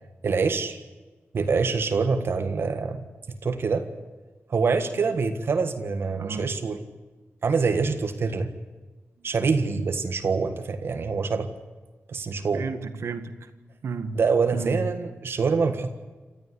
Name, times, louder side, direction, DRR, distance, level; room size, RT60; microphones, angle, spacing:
voice 1, 0.2-0.8 1.3-3.0 3.4-3.8 4.5-6.8 7.4-8.5 9.2-11.5 12.1-12.6 14.1-15.9, right 4 dB, 60° right, 8 dB, 1.6 m, -25 dB
voice 2, 6.2-6.5 12.5-13.5 13.8-14.2 14.5-14.9, right 4 dB, 80° right, 10 dB, 1.7 m, -32 dB
28.0 x 14.0 x 9.8 m, 1.2 s
wide cardioid pair, 145°, 5 cm